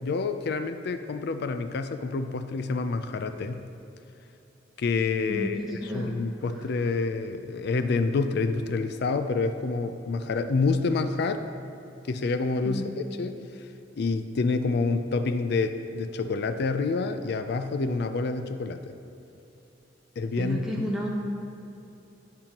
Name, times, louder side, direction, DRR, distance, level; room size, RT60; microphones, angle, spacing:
voice 1, 0.0-3.7 4.8-11.4 12.1-13.4 14.0-19.0 20.2-20.9, left 4 dB, 60° left, 9 dB, 0.4 m, -28 dB
voice 2, 5.3-6.1 12.6-12.8 20.4-21.1, equal, ahead, -4 dB, 0.8 m, -32 dB
10.5 x 8.8 x 2.9 m, 2.9 s
head